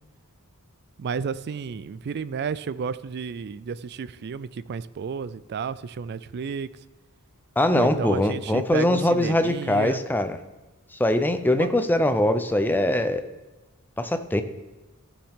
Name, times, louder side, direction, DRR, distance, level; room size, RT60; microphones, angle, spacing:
voice 1, 1.0-6.7 7.7-10.0 11.5-11.7, right 6 dB, 50° right, 17 dB, 0.3 m, -32 dB
voice 2, 7.6-10.4 11.0-13.2 14.0-14.4, left 1 dB, 10° left, 8 dB, 0.5 m, -22 dB
14.5 x 7.2 x 3.6 m, 1.1 s
head